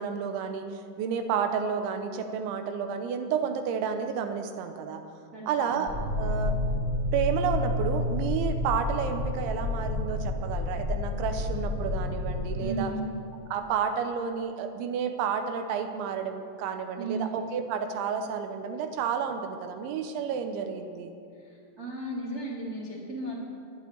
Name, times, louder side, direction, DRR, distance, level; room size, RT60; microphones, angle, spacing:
voice 1, 0.0-5.0 5.5-5.9 6.2-6.6 7.1-12.9 13.5-21.1, right 7 dB, 90° right, 7 dB, 3.1 m, -31 dB
voice 2, 5.3-5.8 12.6-13.0 17.0-17.3 21.8-23.4, right 2 dB, 50° right, -4 dB, 1.0 m, -35 dB
sound 1, 5.9-12.6, left 2 dB, 10° right, 2.3 m, -30 dB
11.5 x 8.3 x 9.9 m, 2.5 s
omnidirectional pair, 5.4 m